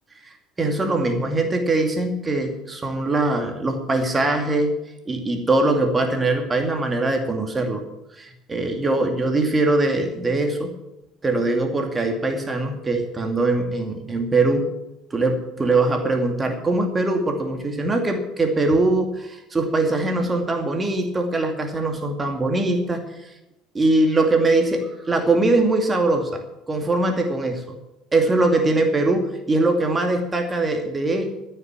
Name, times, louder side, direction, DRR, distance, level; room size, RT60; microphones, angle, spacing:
voice 1, 0.2-4.7 5.1-7.8 8.2-10.7 11.2-14.7 15.1-23.3 23.7-26.4 26.7-27.8 28.1-31.3, right 2 dB, 25° right, 4 dB, 2.4 m, -22 dB
14.5 x 6.8 x 8.6 m, 0.92 s
hypercardioid pair, 65°, 0 cm